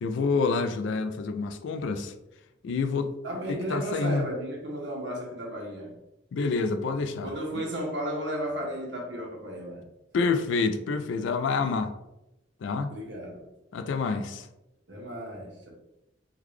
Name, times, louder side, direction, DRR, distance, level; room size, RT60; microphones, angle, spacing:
voice 1, 0.0-2.1 2.6-3.1 3.5-4.3 6.3-7.3 10.1-11.9 12.6-12.9 13.7-14.5, left 4 dB, 70° left, 0.3 m, -27 dB
voice 2, 3.2-5.9 7.2-9.8 12.9-13.5 14.9-15.7, equal, 65° right, 1.0 m, -34 dB
3.7 x 2.3 x 3.1 m
head